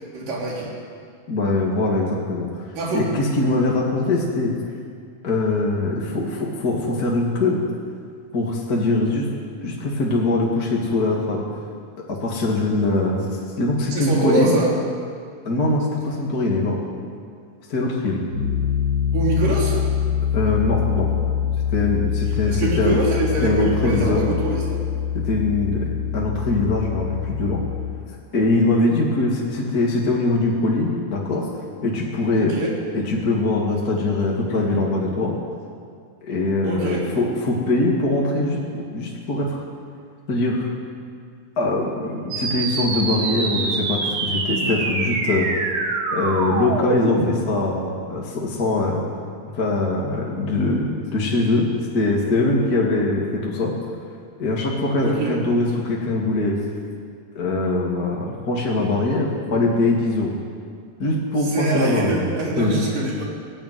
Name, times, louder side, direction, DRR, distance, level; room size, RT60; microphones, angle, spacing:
voice 1, 0.1-0.7 2.8-3.0 13.9-14.7 19.1-19.8 22.5-24.8 32.3-32.7 36.6-37.0 55.0-55.4 61.5-63.3, right 2 dB, 80° right, -3 dB, 5.2 m, -24 dB
voice 2, 1.3-2.7 2.9-4.5 5.2-7.6 8.3-9.3 9.6-11.4 12.1-14.6 15.4-16.8 17.7-18.2 20.3-21.1 21.7-23.0 23.4-24.3 25.1-27.6 28.3-31.5 31.8-32.5 32.9-35.3 36.2-39.6 40.3-40.7 41.6-45.5 46.1-49.0 49.5-53.7 54.4-56.6 57.3-60.4 61.0-62.3 62.6-62.8, left 2 dB, 30° left, -3 dB, 2.5 m, -22 dB
Piano, 18.3-27.9, left 8 dB, 50° right, 8.6 m, -24 dB
sound 1, 42.3-47.3, right 4 dB, 65° right, 3.3 m, -25 dB
18.5 x 16.0 x 9.5 m, 2.2 s
omnidirectional pair, 3.8 m